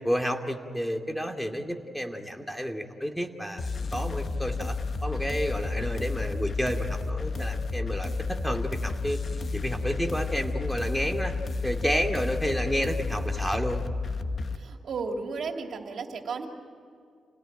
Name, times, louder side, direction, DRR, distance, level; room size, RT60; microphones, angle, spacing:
voice 1, 0.0-4.8 5.0-9.2 9.5-11.3 11.6-13.8, equal, 5° left, 4 dB, 2.5 m, -30 dB
sound 1, 3.6-14.6, left 3 dB, 50° left, 1.2 m, -31 dB
voice 2, 14.5-16.5, right 4 dB, 65° right, 3 dB, 2.9 m, -34 dB
29.5 x 18.0 x 9.0 m, 2.3 s
cardioid pair, 95°, 0 cm